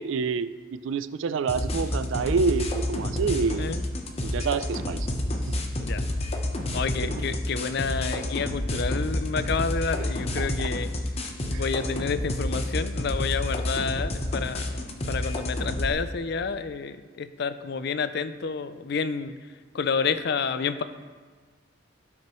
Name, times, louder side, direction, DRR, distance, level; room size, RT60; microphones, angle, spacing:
voice 1, 0.0-3.7 4.2-5.1 5.5-5.6 7.0-7.4 10.4-10.7 11.5-11.6, right 5 dB, 70° right, 13 dB, 0.4 m, -28 dB
sound 1, 1.5-15.9, left 1 dB, 30° left, 0.9 m, -29 dB
voice 2, 6.7-10.9 11.4-19.3 19.7-20.8, left 5 dB, 55° left, 12 dB, 0.4 m, -29 dB
16.5 x 6.0 x 3.1 m, 1.5 s
head